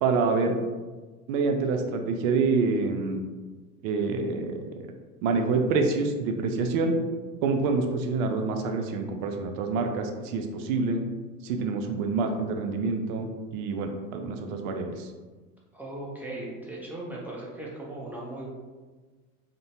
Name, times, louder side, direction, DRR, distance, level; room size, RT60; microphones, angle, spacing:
voice 1, 0.0-0.6 1.3-3.2 3.8-4.6 5.2-6.9 7.4-11.0 11.4-15.1, right 4 dB, 60° right, 4 dB, 0.5 m, -27 dB
voice 2, 15.7-18.5, right 1 dB, 5° right, -5 dB, 0.5 m, -38 dB
2.8 x 2.1 x 2.8 m, 1.3 s
hypercardioid pair, 85°, 46 cm